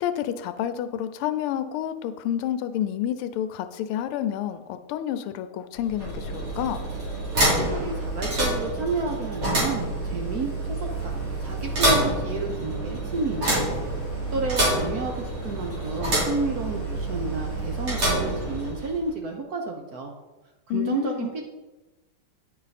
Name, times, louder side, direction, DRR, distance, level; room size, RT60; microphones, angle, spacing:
voice 1, 0.0-6.9 20.7-21.3, left 10 dB, 85° left, 10 dB, 1.5 m, -29 dB
sound 1, 5.7-19.0, right 1 dB, 80° right, 3.9 m, -27 dB
voice 2, 7.6-13.7 14.3-20.1 20.7-21.4, right 3 dB, 60° right, 2 dB, 1.1 m, -31 dB
sound 2, 10.8-18.7, left 1 dB, 25° right, 2.8 m, -41 dB
9.2 x 5.6 x 4.1 m, 1.1 s
omnidirectional pair, 2.4 m